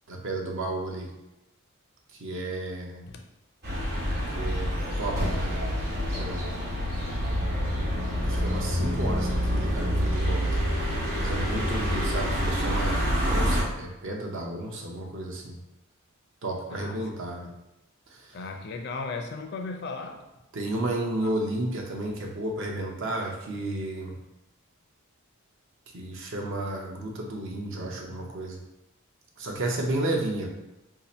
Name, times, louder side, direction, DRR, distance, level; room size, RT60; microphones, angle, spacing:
voice 1, 0.1-1.1 2.1-3.0 4.3-5.6 6.1-6.6 8.2-10.6 11.1-15.6 16.4-17.5 18.1-18.4 20.5-24.1 25.9-28.6 29.4-30.5, right 1 dB, 60° right, 0 dB, 0.6 m, -32 dB
sound 1, 3.6-13.6, equal, 45° right, 1.1 m, -27 dB
voice 2, 16.7-17.1 18.3-20.2 21.1-21.3, left 3 dB, 50° left, 4 dB, 0.4 m, -36 dB
2.7 x 2.5 x 4.2 m, 0.96 s
head